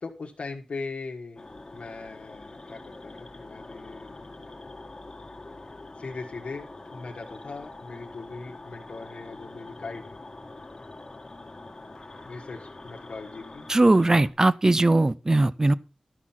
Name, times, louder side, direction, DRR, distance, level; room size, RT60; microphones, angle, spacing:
voice 1, 0.0-1.4 1.7-4.2 6.0-10.2 12.2-13.7, left 4 dB, 85° left, 1.4 m, -40 dB
sound 1, 1.4-14.3, left 2 dB, 35° left, 1.6 m, -44 dB
voice 2, 13.7-15.7, right 2 dB, 30° right, 0.6 m, -20 dB
12.5 x 6.2 x 5.8 m
wide cardioid pair, 95°, 2 cm